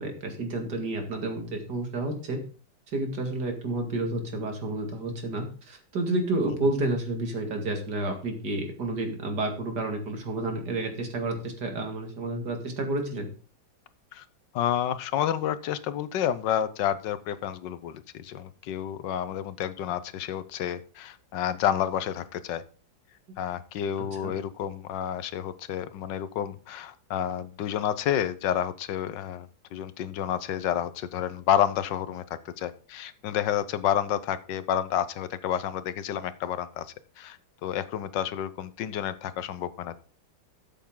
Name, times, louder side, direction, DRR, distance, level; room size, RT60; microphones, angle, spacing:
voice 1, 0.0-2.4 2.9-13.3 24.2-24.3, right 2 dB, 65° right, 4 dB, 2.7 m, -30 dB
voice 2, 14.5-22.6 23.4-36.9 37.2-40.0, left 10 dB, 80° left, 14 dB, 1.4 m, -30 dB
13.0 x 7.1 x 3.8 m, 0.39 s
omnidirectional pair, 2.0 m